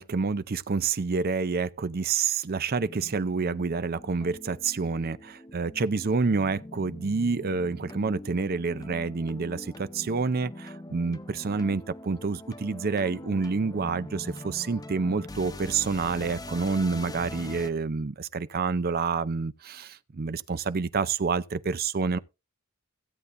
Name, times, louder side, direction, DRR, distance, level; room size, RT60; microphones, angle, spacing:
voice 1, 0.0-22.2, right 4 dB, 45° right, 0.5 m, -28 dB
sound 1, 2.8-17.7, left 1 dB, 15° left, 0.6 m, -43 dB
16.0 x 8.2 x 2.6 m
head